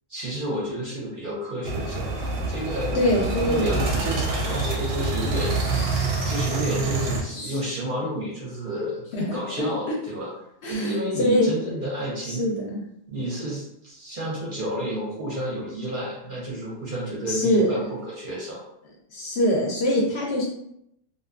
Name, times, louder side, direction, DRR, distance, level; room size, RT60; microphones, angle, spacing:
voice 1, 0.1-5.5 6.2-9.0 9.3-10.3 10.7-12.4 13.1-18.6, right 1 dB, 50° right, -5 dB, 0.7 m, -31 dB
sound 1, 1.6-7.2, right 3 dB, 85° right, 1.0 m, -26 dB
voice 2, 2.9-3.8 6.7-6.8 7.3-7.6 9.1-9.7 10.6-11.5 12.2-12.8 17.3-17.7 19.1-20.4, left 1 dB, 65° left, -3 dB, 0.7 m, -24 dB
2.6 x 2.2 x 2.3 m, 0.77 s
omnidirectional pair, 1.4 m